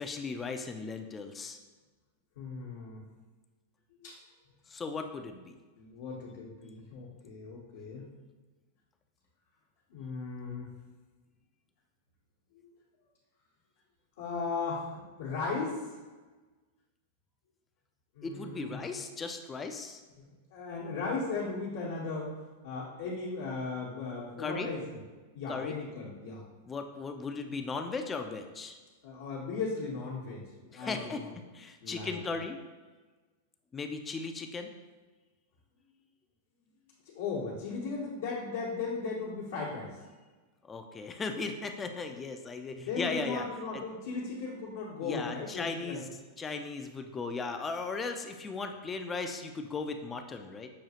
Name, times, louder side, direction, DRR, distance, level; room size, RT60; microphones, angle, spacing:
voice 1, 0.0-1.6 4.7-5.6 18.2-20.0 24.4-24.7 25.5-25.8 26.7-28.8 30.7-31.2 31.5-32.6 33.7-34.7 40.6-43.4 43.7-43.8 45.0-46.1 46.4-50.7, left 4 dB, 20° left, 6 dB, 0.3 m, -37 dB
voice 2, 2.4-3.0 3.9-4.1 5.8-8.0 9.9-10.7 12.5-12.7 14.2-16.0 18.1-18.8 20.2-22.3 22.6-24.8 25.3-26.4 29.0-31.3 31.8-32.2 37.0-40.0 42.8-46.0, left 4 dB, 75° left, -8 dB, 1.0 m, -37 dB
6.2 x 2.4 x 2.8 m, 1.3 s
hypercardioid pair, 130°, 0 cm